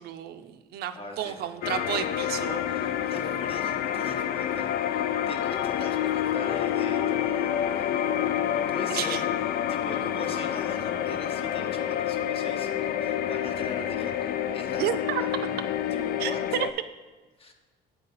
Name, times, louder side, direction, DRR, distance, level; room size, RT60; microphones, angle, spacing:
voice 1, 0.0-2.7 8.9-9.2 14.8-15.2 16.2-16.7, right 10 dB, 70° right, 9 dB, 0.5 m, -31 dB
voice 2, 0.9-1.4 2.7-15.1 15.9-16.6 17.4-17.5, left 2 dB, 35° left, 4 dB, 1.0 m, -41 dB
sound 1, 1.6-16.7, left 10 dB, 65° left, 0.4 m, -28 dB
8.3 x 4.0 x 5.3 m, 1.3 s
cardioid pair, 110°, 17 cm